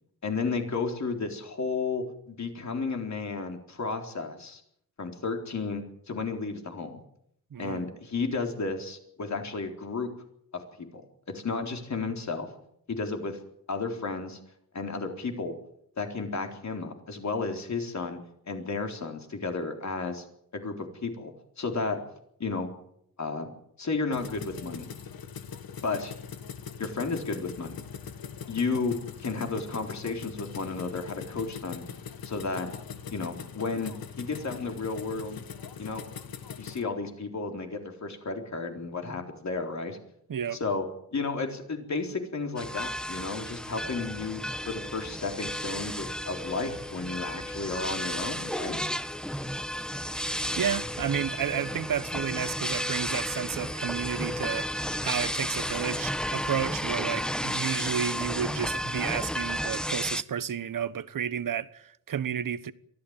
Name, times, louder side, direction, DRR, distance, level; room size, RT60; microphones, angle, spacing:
voice 1, 0.2-4.6 5.0-7.0 7.6-10.1 10.5-11.0 11.3-12.5 12.9-13.4 13.7-14.4 14.7-15.6 16.0-18.2 18.5-20.2 20.5-22.0 22.4-22.7 23.2-23.5 23.8-24.9 25.8-26.1 26.8-27.8 28.5-31.8 32.2-32.7 33.1-35.4 35.8-36.0 36.6-40.0 40.6-40.9 41.1-48.8, left 4 dB, 50° left, 4.0 m, -33 dB
voice 2, 7.5-7.9 40.3-40.6 50.6-62.7, right 8 dB, 65° right, 1.2 m, -32 dB
sound 1, 24.1-36.8, left 7 dB, 80° left, 1.7 m, -41 dB
sound 2, 42.6-60.2, equal, ahead, 0.9 m, -33 dB
23.0 x 15.5 x 8.9 m
cardioid pair, 85°, 36 cm